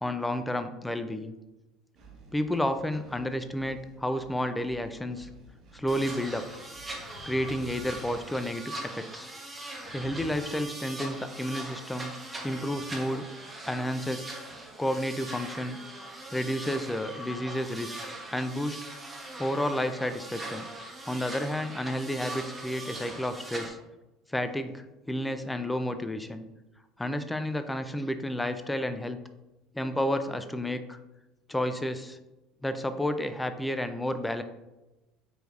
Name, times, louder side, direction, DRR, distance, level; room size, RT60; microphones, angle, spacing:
voice 1, 0.0-1.4 2.3-5.3 5.7-6.5 7.2-9.3 9.9-12.1 12.4-13.2 13.7-14.3 14.8-15.8 16.3-17.9 18.3-18.8 19.4-20.7 21.1-23.8 24.3-26.4 27.0-29.2 29.7-31.0 31.5-32.2 32.6-34.4, left 1 dB, 10° left, 9 dB, 0.3 m, -31 dB
Engine, 2.0-7.2, right 3 dB, 55° right, 1.0 m, -54 dB
sound 1, 5.9-23.7, right 2 dB, 15° right, 0.9 m, -41 dB
sound 2, 6.8-9.0 9.7-11.2 12.4-13.2 13.7-13.8, left 6 dB, 75° left, 0.4 m, -50 dB
4.9 x 3.2 x 2.4 m, 1.0 s
supercardioid pair, 95°, 0 cm